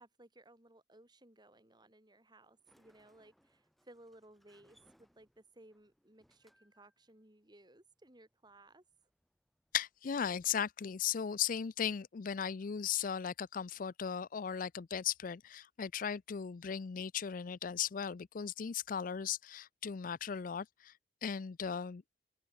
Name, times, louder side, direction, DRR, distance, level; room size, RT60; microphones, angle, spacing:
voice 1, 0.0-8.8, right 1 dB, 25° right, 3.6 m, -61 dB
Sliding door, 2.4-10.0, equal, ahead, 7.0 m, -73 dB
voice 2, 9.7-20.9 21.2-22.0, left 8 dB, 50° left, 0.4 m, -37 dB
open air
head